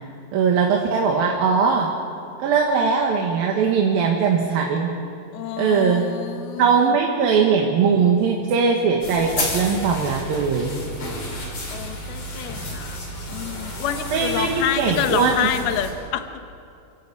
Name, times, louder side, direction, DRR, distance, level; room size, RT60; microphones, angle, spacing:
voice 1, 0.3-1.9 2.4-4.9 5.6-6.1 6.6-10.8 14.1-15.5, right 5 dB, 75° right, 1 dB, 3.3 m, -20 dB
voice 2, 5.3-7.0 11.7-13.0 13.3-16.3, left 10 dB, 85° left, 8 dB, 3.0 m, -28 dB
sound 1, 9.0-15.9, left 1 dB, 55° left, 6.3 m, -31 dB
29.0 x 15.5 x 8.6 m, 2.5 s
omnidirectional pair, 4.3 m